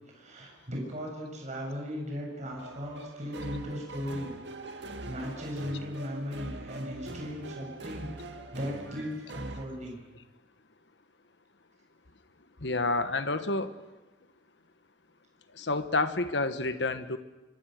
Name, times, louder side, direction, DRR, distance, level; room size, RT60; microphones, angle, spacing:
voice 1, 0.1-4.3 5.1-8.1 8.5-10.0, equal, 40° right, 0 dB, 7.1 m, -37 dB
sound 1, 2.5-9.7, right 2 dB, 65° right, 2.0 m, -42 dB
voice 2, 12.6-13.7 15.6-17.2, left 2 dB, 65° left, 10 dB, 1.4 m, -29 dB
25.5 x 25.0 x 6.6 m, 1.1 s
head